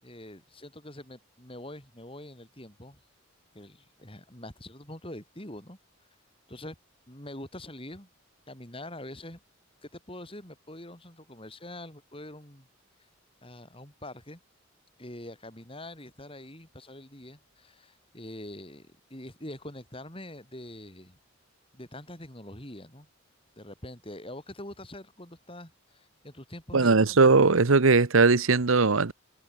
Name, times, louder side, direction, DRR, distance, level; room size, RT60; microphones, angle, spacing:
voice 1, 0.0-3.0 3.5-5.8 6.5-6.8 7.1-8.1 8.5-9.4 9.8-12.7 13.4-14.4 15.0-21.2 21.7-23.1 23.6-27.1, left 1 dB, 25° left, 7.6 m, -44 dB
voice 2, 26.7-29.1, right 4 dB, 80° right, 1.0 m, -20 dB
head